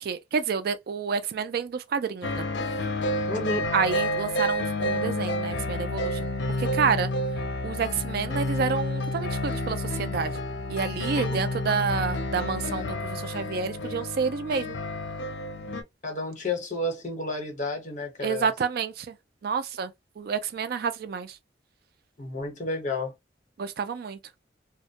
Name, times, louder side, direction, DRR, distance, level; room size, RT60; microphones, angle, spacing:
voice 1, 0.0-2.5 3.7-6.3 6.6-7.1 7.6-10.4 10.7-14.8 18.2-19.2 19.4-21.4 23.6-24.2, right 6 dB, 55° right, 0.3 m, -29 dB
sound 1, 2.2-15.8, left 1 dB, 85° left, 0.5 m, -30 dB
voice 2, 3.3-3.7 11.1-11.4 16.0-18.5 22.2-23.1, left 2 dB, 45° left, 0.9 m, -31 dB
2.2 x 2.1 x 2.7 m
head